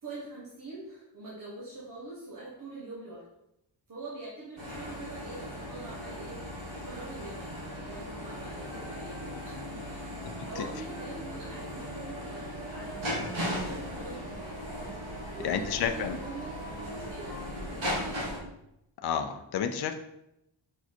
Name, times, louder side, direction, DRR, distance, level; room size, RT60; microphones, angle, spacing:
voice 1, 0.0-3.2 3.9-6.4 6.8-10.1 10.4-14.6 15.3-18.4, right 2 dB, 40° right, -6 dB, 1.5 m, -44 dB
sound 1, 4.6-18.4, equal, 70° right, 2.4 m, -38 dB
sound 2, 8.1-17.5, equal, 5° right, 0.8 m, -50 dB
voice 2, 10.2-10.6 15.4-16.2 19.0-19.9, left 7 dB, 50° left, 6 dB, 0.5 m, -31 dB
5.7 x 4.7 x 4.4 m, 0.84 s
wide cardioid pair, 175°, 49 cm